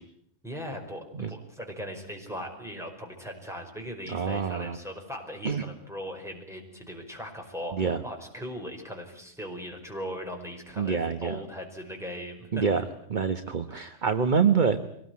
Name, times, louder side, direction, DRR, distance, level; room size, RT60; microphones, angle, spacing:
voice 1, 0.4-12.8 13.7-14.1, equal, ahead, 2 dB, 5.2 m, -39 dB
voice 2, 4.1-4.8 5.4-5.6 7.7-8.0 10.8-11.4 12.5-12.8 13.1-14.8, right 6 dB, 40° right, 9 dB, 1.2 m, -26 dB
24.0 x 19.5 x 9.5 m, 0.73 s
omnidirectional pair, 1.3 m